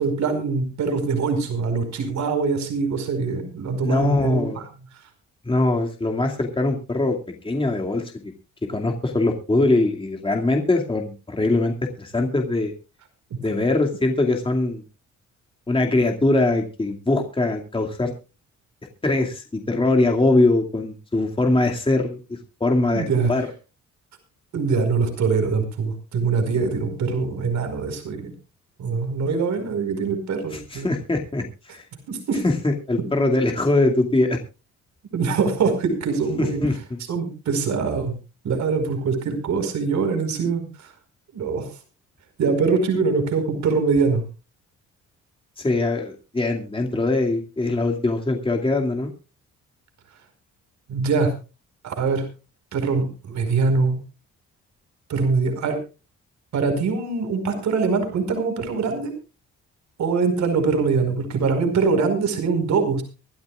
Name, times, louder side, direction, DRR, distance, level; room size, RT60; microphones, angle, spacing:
voice 1, 0.0-4.6 22.9-23.3 24.5-28.3 28.8-30.9 32.1-32.4 35.1-36.6 37.1-38.1 38.4-40.9 41.3-41.7 42.4-44.2 50.9-51.3 51.8-52.2 52.7-54.0 55.1-55.8 56.5-59.1 60.0-63.0, right 4 dB, 70° right, 7 dB, 4.9 m, -23 dB
voice 2, 3.8-4.6 5.4-8.3 8.7-12.7 13.4-14.8 15.7-18.1 19.0-23.5 30.5-31.8 32.4-34.4 36.4-36.8 45.6-49.1, left 2 dB, 15° left, 2 dB, 2.4 m, -22 dB
24.5 x 12.0 x 2.4 m, 0.32 s
cardioid pair, 90°, 30 cm